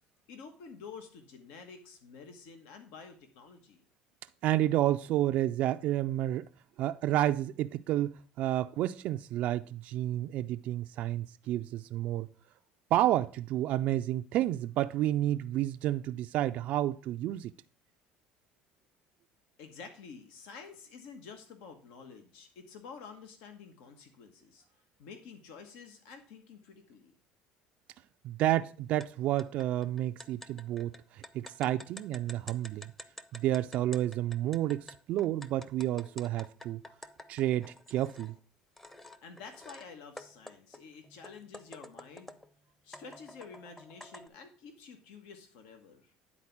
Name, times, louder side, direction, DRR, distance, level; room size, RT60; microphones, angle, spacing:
voice 1, 0.3-3.8 19.6-24.6 25.0-27.1 39.2-42.3 42.8-46.1, left 5 dB, 80° left, 1.3 m, -50 dB
voice 2, 4.4-6.4 6.8-12.3 12.9-17.5 28.2-32.9 33.3-36.8 37.3-38.3, right 13 dB, 60° right, 0.4 m, -30 dB
sound 1, 29.0-29.1 29.4-38.3 38.8-39.9 40.2-42.5 42.9-44.3, left 1 dB, 10° left, 0.7 m, -50 dB
9.8 x 4.2 x 5.8 m
supercardioid pair, 105°, 3 cm